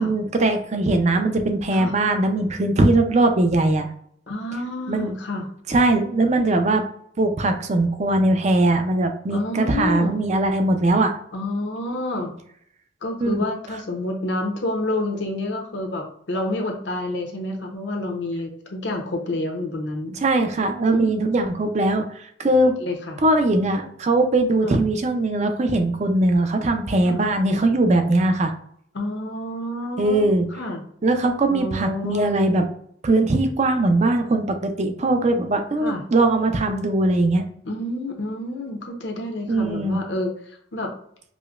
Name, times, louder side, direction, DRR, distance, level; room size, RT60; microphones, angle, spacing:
voice 1, 0.0-3.9 4.9-5.1 5.7-6.8 7.2-11.1 13.2-13.4 20.2-22.7 23.2-28.5 30.0-30.5 31.0-32.6 33.0-37.5 39.5-40.0, right 2 dB, 40° right, 6 dB, 0.5 m, -20 dB
voice 2, 4.3-5.4 9.3-10.2 11.3-12.3 13.0-20.2 20.9-21.0 22.8-23.2 24.6-24.8 27.0-27.2 28.9-30.8 31.5-32.4 35.8-36.0 37.6-40.9, left 1 dB, 70° left, 2 dB, 0.8 m, -29 dB
4.9 x 2.1 x 2.4 m, 0.66 s
head